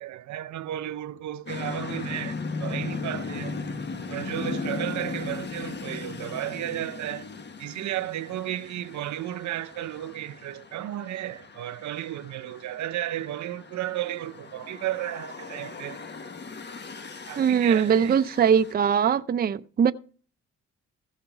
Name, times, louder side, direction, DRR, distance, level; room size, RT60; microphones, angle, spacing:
voice 1, 0.0-3.6 4.1-7.3 7.6-16.0 17.3-18.2, right 13 dB, 70° right, 0.7 m, -33 dB
sound 1, 1.5-18.7, left 4 dB, 35° left, 1.4 m, -37 dB
voice 2, 17.4-19.9, right 7 dB, 30° right, 0.5 m, -21 dB
15.0 x 5.8 x 5.8 m
cardioid pair, 90°, 30 cm